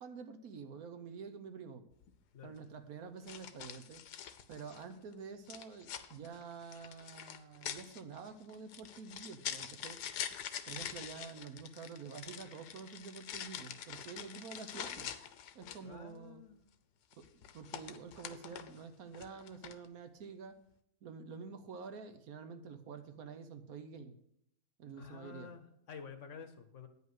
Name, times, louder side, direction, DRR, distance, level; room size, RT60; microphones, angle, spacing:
voice 1, 0.0-1.8 2.4-4.0 4.5-10.0 10.7-15.1 15.5-16.4 17.2-20.6 21.0-24.2 24.8-25.5, right 5 dB, 70° right, 9 dB, 1.3 m, -48 dB
sound 1, 1.9-2.1 3.3-4.9 5.5-16.0 17.1-18.8 19.1-19.9, left 9 dB, 90° left, 1.3 m, -45 dB
voice 2, 15.8-16.6 25.0-26.9, left 6 dB, 55° left, 9 dB, 1.1 m, -50 dB
9.5 x 5.5 x 7.8 m, 0.76 s
omnidirectional pair, 1.7 m